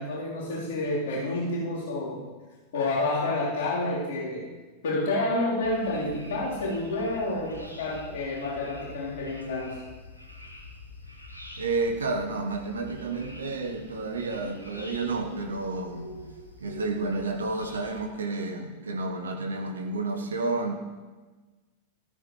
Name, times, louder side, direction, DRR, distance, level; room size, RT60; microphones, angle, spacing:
voice 1, 0.0-2.2 2.7-4.5 4.8-9.8, left 2 dB, 55° left, -6 dB, 3.8 m, -29 dB
sound 1, 5.6-18.0, left 1 dB, 85° left, 1.5 m, -46 dB
voice 2, 11.6-16.1 16.6-20.7, right 3 dB, 70° right, 3 dB, 1.2 m, -30 dB
14.0 x 14.0 x 3.2 m, 1.3 s
figure-of-eight pair, 90°, 0 cm